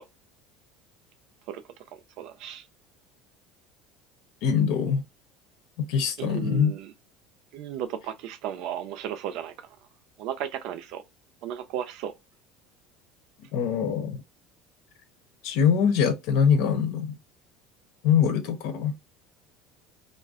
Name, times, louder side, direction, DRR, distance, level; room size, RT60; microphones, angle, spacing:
voice 1, 1.9-2.6 6.2-6.9 7.5-9.5 10.2-11.0 11.4-12.1, right 10 dB, 60° right, 0.5 m, -34 dB
voice 2, 4.4-5.0 5.8-6.7 13.5-14.2 15.4-17.2 18.0-18.9, left 7 dB, 70° left, 0.7 m, -23 dB
2.5 x 2.1 x 3.5 m
cardioid pair, 150°, 0 cm